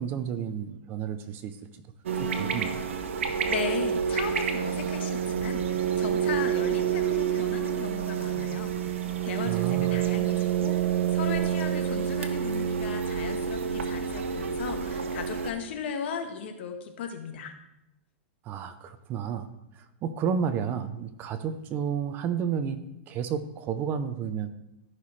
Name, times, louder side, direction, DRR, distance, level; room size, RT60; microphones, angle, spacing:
voice 1, 0.0-1.6 2.2-2.7 9.5-10.0 18.4-19.5 19.8-22.8 23.1-24.5, right 7 dB, 30° right, 11 dB, 0.6 m, -31 dB
sound 1, 2.1-15.5, right 8 dB, 90° right, 1.1 m, -28 dB
voice 2, 3.2-9.0 9.2-17.5, left 7 dB, 65° left, 6 dB, 1.4 m, -37 dB
14.0 x 5.8 x 3.3 m, 0.85 s
hypercardioid pair, 145°, 7 cm